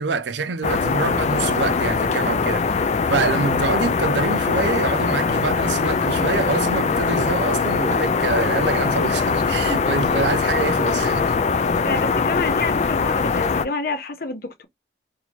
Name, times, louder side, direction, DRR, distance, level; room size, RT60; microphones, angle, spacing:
voice 1, 0.0-2.8 3.1-11.3, right 4 dB, 80° right, 0.6 m, -25 dB
sound 1, 0.6-13.7, left 5 dB, 40° left, 0.4 m, -21 dB
voice 2, 11.8-14.6, left 3 dB, 55° left, 0.8 m, -28 dB
2.9 x 2.7 x 4.2 m
head